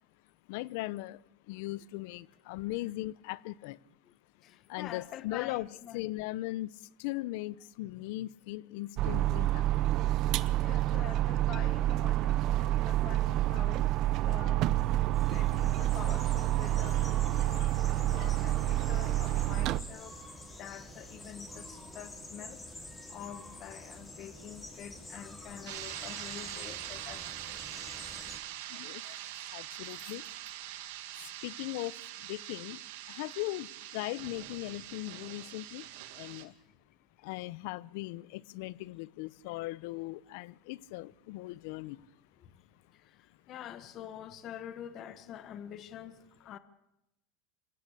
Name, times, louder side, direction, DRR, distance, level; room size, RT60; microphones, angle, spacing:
voice 1, 0.5-1.2 1.5-3.8 4.7-9.8 10.9-11.0 17.5-17.7 28.7-29.2 29.5-30.3 31.2-32.8 33.1-35.9 36.1-36.5 37.2-42.1, left 18 dB, 65° left, 0.8 m, -39 dB
voice 2, 4.4-6.0 10.6-13.9 14.2-14.7 15.3-20.2 20.5-22.8 23.1-27.2 28.5-29.5 30.0-30.1 42.4-42.5 42.9-46.6, left 10 dB, 40° left, 1.4 m, -47 dB
sound 1, 9.0-19.8, right 14 dB, 45° right, 1.0 m, -28 dB
sound 2, 15.1-28.4, left 1 dB, 15° left, 6.0 m, -48 dB
sound 3, 25.7-36.4, right 13 dB, 70° right, 2.6 m, -43 dB
26.5 x 16.5 x 8.6 m
supercardioid pair, 130°, 0 cm